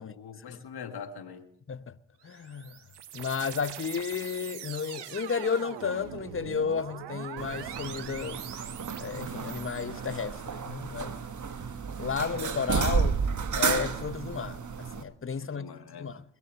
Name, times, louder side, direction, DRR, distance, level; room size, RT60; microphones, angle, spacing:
voice 1, 0.0-1.5 15.4-16.1, left 6 dB, 70° left, 1.7 m, -43 dB
voice 2, 2.2-2.8 3.1-8.4 9.0-11.1 12.0-13.2 13.5-15.7 16.0-16.2, left 6 dB, 30° left, 0.9 m, -33 dB
sound 1, 2.2-9.8, right 10 dB, 85° right, 1.2 m, -43 dB
sound 2, 7.4-15.0, right 5 dB, 45° right, 1.4 m, -32 dB
21.5 x 7.2 x 8.6 m
supercardioid pair, 50°, 40 cm